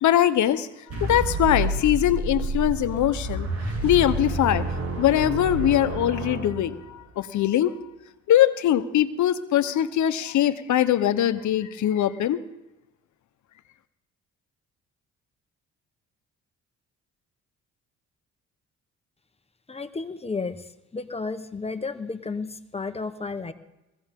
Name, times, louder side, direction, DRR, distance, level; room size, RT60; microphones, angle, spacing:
voice 1, 0.0-0.7 0.9-3.5 3.8-4.7 5.0-7.7 8.3-12.4, left 11 dB, 70° left, 12 dB, 1.0 m, -22 dB
sound 1, 0.9-7.1, right 2 dB, 55° right, 7.8 m, -29 dB
voice 2, 19.7-20.6 20.9-23.5, left 4 dB, 20° left, 9 dB, 1.1 m, -32 dB
21.0 x 16.0 x 3.7 m, 0.98 s
cardioid pair, 90°, 30 cm